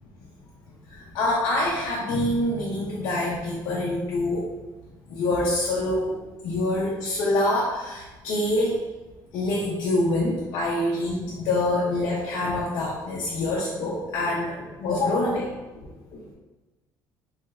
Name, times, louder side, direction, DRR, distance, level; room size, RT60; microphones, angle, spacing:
voice 1, 0.9-4.5 5.1-6.2 6.4-8.8 9.3-16.2, left 1 dB, 65° left, -4 dB, 0.5 m, -26 dB
3.2 x 2.9 x 2.4 m, 1.2 s
cardioid pair, 170°, 8 cm